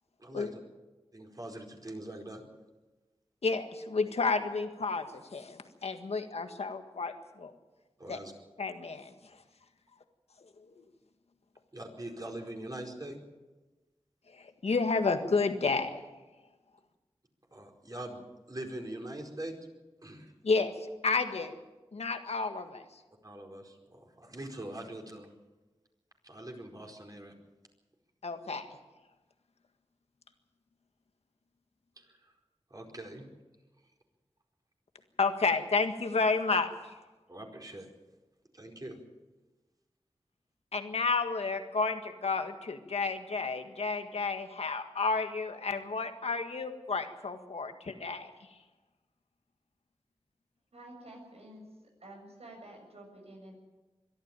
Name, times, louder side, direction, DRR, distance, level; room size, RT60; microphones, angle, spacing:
voice 1, 0.2-0.5 1.1-2.4 8.0-8.3 11.7-13.2 17.5-18.2 18.5-19.5 20.0-20.3 23.2-25.3 26.2-27.3 32.0-32.3 32.7-33.2 37.3-37.9 38.5-39.0, right 1 dB, 35° right, 2 dB, 4.7 m, -43 dB
voice 2, 3.4-7.5 8.1-8.2 8.6-9.4 10.7-10.8 14.3-16.0 20.4-21.6 21.9-23.0 28.2-28.7 35.2-37.0 40.7-48.5, left 4 dB, 85° left, 7 dB, 1.7 m, -31 dB
voice 3, 50.7-53.5, right 1 dB, 85° right, 1 dB, 7.2 m, -50 dB
22.5 x 13.0 x 9.1 m, 1.2 s
wide cardioid pair, 50°, 10 cm